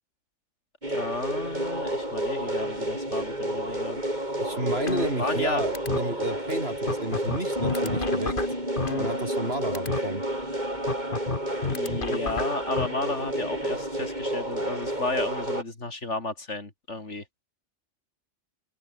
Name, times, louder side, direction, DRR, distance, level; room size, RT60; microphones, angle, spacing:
sound 1, 0.8-15.6, right 1 dB, 40° right, 7.6 m, -30 dB
voice 1, 0.9-4.0 5.2-5.6 11.7-17.2, left 2 dB, 85° left, 4.2 m, -33 dB
voice 2, 4.4-8.4 9.0-10.2, right 1 dB, 60° right, 7.4 m, -31 dB
sound 2, 4.9-5.5 5.7-6.0 6.5-6.6 6.9-9.5 9.7-10.0 10.9-12.9, left 4 dB, 45° left, 2.1 m, -30 dB
Bass guitar, 7.6-13.8, left 1 dB, 30° left, 6.1 m, -37 dB
omnidirectional pair, 1.2 m